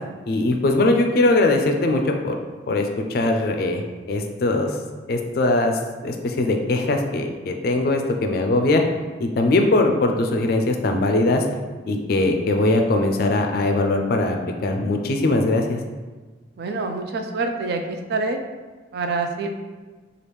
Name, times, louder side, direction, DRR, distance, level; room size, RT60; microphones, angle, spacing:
voice 1, 0.3-2.4 2.7-3.8 4.1-4.8 5.1-8.8 9.2-11.4 11.9-14.4 14.6-15.8, left 2 dB, 55° left, 4 dB, 0.3 m, -21 dB
voice 2, 16.6-18.4 18.9-19.5, right 3 dB, 55° right, 5 dB, 0.3 m, -26 dB
3.4 x 2.4 x 3.1 m, 1.3 s
head